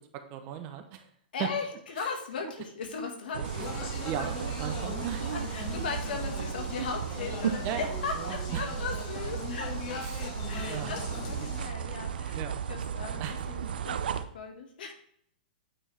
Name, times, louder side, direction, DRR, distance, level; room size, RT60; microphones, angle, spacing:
voice 1, 0.1-1.1 1.4-1.5 4.0-5.3 7.6-8.6 10.0-10.2 10.6-10.9 12.3-12.6 13.2-13.4, right 10 dB, 30° right, 7 dB, 0.8 m, -37 dB
voice 2, 1.3-3.9 5.3-12.4 12.7-14.9, left 5 dB, 70° left, 3 dB, 1.9 m, -38 dB
sound 1, 3.3-14.2, right 7 dB, 75° right, 0.6 m, -35 dB
Speech, 3.4-11.6, left 6 dB, 35° left, 1.3 m, -41 dB
8.8 x 4.6 x 3.3 m, 0.65 s
hypercardioid pair, 155°, 5 cm